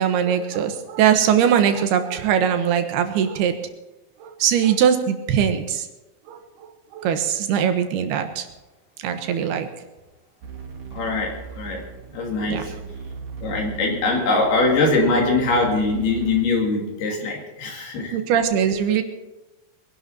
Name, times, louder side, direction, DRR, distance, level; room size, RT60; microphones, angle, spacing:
voice 1, 0.0-3.5 4.2-5.9 6.3-6.4 6.9-8.5 9.0-9.7 12.5-12.7 18.1-19.0, right 8 dB, 90° right, 7 dB, 3.3 m, -21 dB
sound 1, 10.4-16.4, right 6 dB, 60° right, 3.2 m, -37 dB
voice 2, 10.9-11.8 12.1-12.7 13.4-18.2, left 3 dB, 80° left, 0 dB, 4.8 m, -22 dB
22.5 x 11.5 x 4.3 m, 1.1 s
omnidirectional pair, 4.4 m